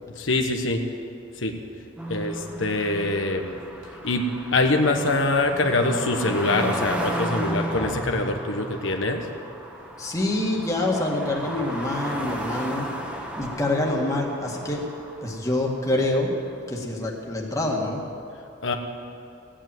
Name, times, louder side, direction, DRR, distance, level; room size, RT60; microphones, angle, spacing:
voice 1, 0.1-0.8 1.4-1.5 2.1-3.6 4.0-9.3 18.6-18.8, left 2 dB, 80° left, 4 dB, 1.2 m, -24 dB
sound 1, 2.0-16.0 16.8-16.9, right 1 dB, 5° right, 1.4 m, -34 dB
voice 2, 10.0-12.9 13.4-14.9 15.2-16.3 16.7-18.0, left 1 dB, 15° left, -1 dB, 1.9 m, -26 dB
16.5 x 8.9 x 9.1 m, 2.5 s
head